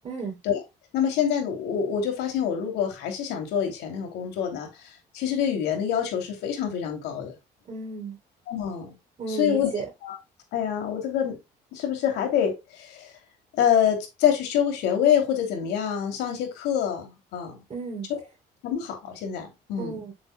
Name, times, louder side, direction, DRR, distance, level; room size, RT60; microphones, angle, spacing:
voice 1, 0.0-0.4 7.7-8.2 9.2-9.8 17.7-18.1 19.8-20.1, right 4 dB, 40° right, 2.9 m, -33 dB
voice 2, 0.9-7.3 8.5-8.9 9.3-9.7 10.0-10.2 10.5-11.4 11.7-13.1 13.5-17.6 18.1-18.2 18.6-20.0, left 9 dB, 85° left, 2.8 m, -26 dB
7.8 x 7.1 x 2.2 m
cardioid pair, 110°, 17 cm